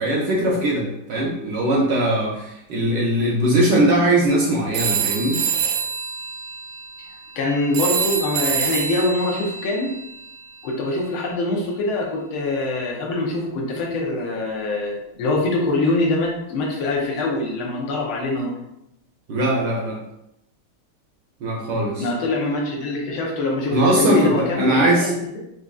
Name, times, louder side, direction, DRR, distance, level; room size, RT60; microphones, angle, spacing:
voice 1, 0.0-5.4 19.3-20.0 21.4-22.1 23.7-25.1, right 1 dB, 70° right, -1 dB, 1.1 m, -20 dB
sound 1, 4.7-10.9, right 7 dB, 90° right, 1.7 m, -27 dB
voice 2, 7.4-9.9 10.6-18.6 22.0-25.4, left 2 dB, 80° left, -1 dB, 1.6 m, -24 dB
4.6 x 2.6 x 2.3 m, 0.82 s
omnidirectional pair, 2.3 m